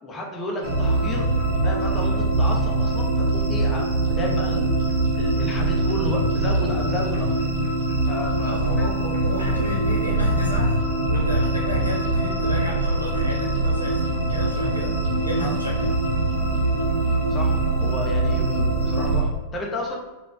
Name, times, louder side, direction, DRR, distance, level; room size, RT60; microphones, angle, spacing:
voice 1, 0.0-1.3 1.6-4.7 5.2-7.3 8.1-8.8 15.4-15.6 17.3-20.0, left 1 dB, 20° left, -1 dB, 0.6 m, -32 dB
sound 1, 0.6-19.2, right 2 dB, 55° right, 1.0 m, -23 dB
voice 2, 8.4-10.8 11.1-15.9, equal, 90° right, -2 dB, 0.7 m, -33 dB
4.2 x 2.2 x 2.3 m, 1.2 s
figure-of-eight pair, 90°, 0 cm